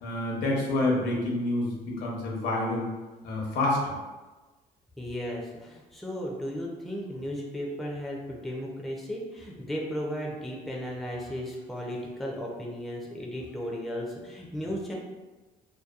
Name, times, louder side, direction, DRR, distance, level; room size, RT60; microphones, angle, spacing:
voice 1, 0.0-2.9 3.2-3.9, left 2 dB, 80° left, -2 dB, 0.8 m, -28 dB
voice 2, 5.0-14.9, equal, ahead, -2 dB, 0.4 m, -35 dB
2.7 x 2.1 x 2.3 m, 1.2 s
cardioid pair, 110°, 17 cm